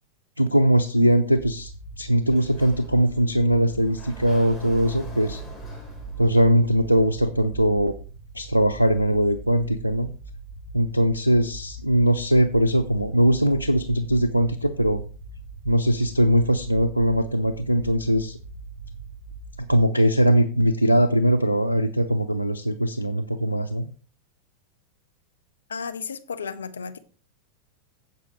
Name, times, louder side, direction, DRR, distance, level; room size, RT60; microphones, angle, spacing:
voice 1, 0.4-1.7 2.0-5.4 6.2-8.0 8.3-10.1 10.7-15.0 15.6-18.4 19.7-23.9, equal, 90° right, 11 dB, 0.6 m, -21 dB
sound 1, 1.3-19.8, right 2 dB, 55° right, 2.6 m, -40 dB
Sliding door, 2.2-7.2, equal, 5° left, 3.9 m, -44 dB
voice 2, 25.7-27.0, left 5 dB, 70° left, 11 dB, 0.8 m, -33 dB
16.0 x 5.5 x 3.1 m, 0.39 s
figure-of-eight pair, 90°, 0 cm